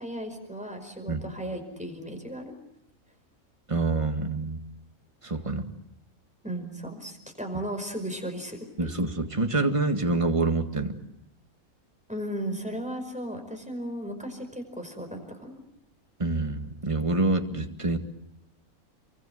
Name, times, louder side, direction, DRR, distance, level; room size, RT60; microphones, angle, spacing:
voice 1, 0.0-2.5 6.4-8.9 12.1-15.5, right 1 dB, 5° right, 5 dB, 5.0 m, -35 dB
voice 2, 3.7-4.6 5.2-5.7 8.8-10.9 16.2-18.0, right 3 dB, 20° right, 5 dB, 2.0 m, -26 dB
29.0 x 23.5 x 7.9 m, 0.86 s
omnidirectional pair, 1.5 m